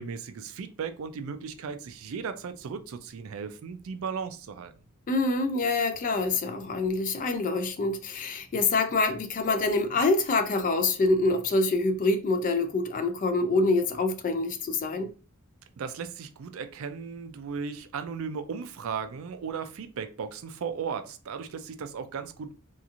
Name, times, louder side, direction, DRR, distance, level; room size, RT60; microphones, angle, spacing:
voice 1, 0.0-4.8 15.8-22.5, right 6 dB, 75° right, 0.4 m, -36 dB
voice 2, 5.1-15.1, left 3 dB, 40° left, 0.3 m, -26 dB
2.8 x 2.4 x 2.4 m
head